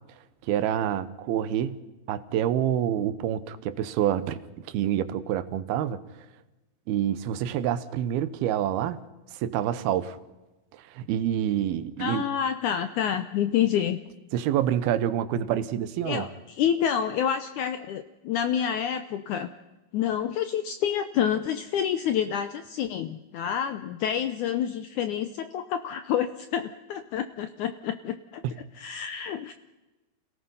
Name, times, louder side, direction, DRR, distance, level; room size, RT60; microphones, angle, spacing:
voice 1, 0.5-1.8 2.1-4.4 4.7-6.0 6.9-9.0 9.3-10.2 10.7-12.2 14.3-16.3 28.4-28.5, right 10 dB, 80° right, 14 dB, 2.8 m, -27 dB
voice 2, 12.0-14.0 16.1-19.5 19.9-28.4 28.7-29.5, left 9 dB, 80° left, 10 dB, 1.8 m, -28 dB
27.5 x 17.5 x 5.6 m, 1.1 s
omnidirectional pair, 4.4 m